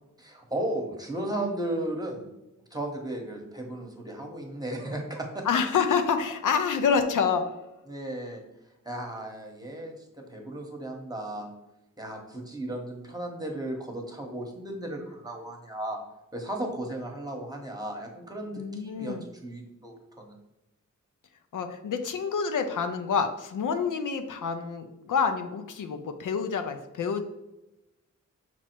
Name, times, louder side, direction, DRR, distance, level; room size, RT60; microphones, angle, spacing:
voice 1, 0.2-2.3 2.7-5.4 7.9-8.4 8.8-11.5 12.0-16.0 16.3-20.3, right 1 dB, 10° right, 2 dB, 1.0 m, -35 dB
voice 2, 5.4-7.5 18.5-19.3 21.5-27.2, left 6 dB, 80° left, 7 dB, 0.5 m, -27 dB
5.9 x 2.0 x 4.4 m, 0.95 s
wide cardioid pair, 70°, 31 cm